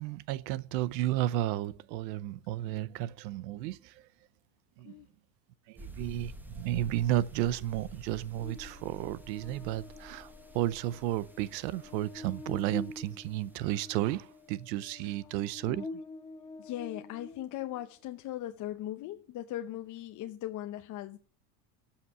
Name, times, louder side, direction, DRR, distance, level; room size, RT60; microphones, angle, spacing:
voice 1, 0.0-4.1 4.8-4.9 5.7-15.9, right 14 dB, 90° right, 0.8 m, -33 dB
sound 1, 5.8-14.2, equal, 5° right, 0.8 m, -50 dB
Buzz, 8.4-17.9, left 3 dB, 10° left, 1.5 m, -47 dB
voice 2, 16.6-21.2, left 13 dB, 40° left, 0.8 m, -39 dB
13.0 x 5.8 x 8.0 m
cardioid pair, 145°, 49 cm